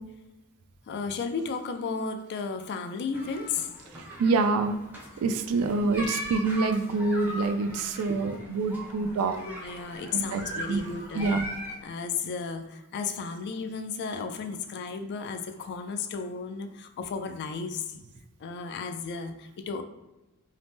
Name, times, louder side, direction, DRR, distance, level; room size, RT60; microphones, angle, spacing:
voice 1, 0.9-3.7 5.6-5.8 9.4-11.4 11.8-17.9 18.4-19.8, left 5 dB, 50° left, 7 dB, 0.3 m, -34 dB
sound 1, 3.1-11.8, equal, 10° right, 0.5 m, -40 dB
voice 2, 4.2-4.8 5.2-9.4 10.1-10.4 10.7-10.8 11.1-11.5, right 3 dB, 80° right, 8 dB, 0.3 m, -26 dB
2.8 x 2.0 x 3.3 m, 0.98 s
head